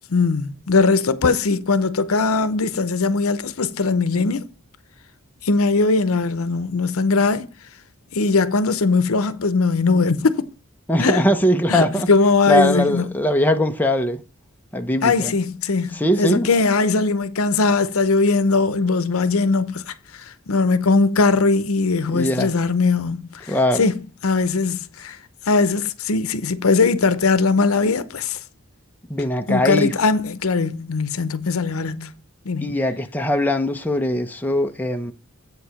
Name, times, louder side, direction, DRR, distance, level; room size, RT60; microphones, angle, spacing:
voice 1, 0.1-4.5 5.4-7.5 8.1-10.5 11.0-11.2 11.7-13.1 15.0-15.9 16.2-25.2 25.5-28.4 29.5-32.1 32.5-32.7, left 4 dB, 75° left, 0.7 m, -20 dB
voice 2, 10.9-12.1 12.5-14.2 14.7-15.3 15.9-16.5 22.1-22.5 23.5-23.9 29.1-29.9 32.6-35.1, left 1 dB, 10° left, 0.7 m, -21 dB
8.2 x 4.8 x 5.6 m
head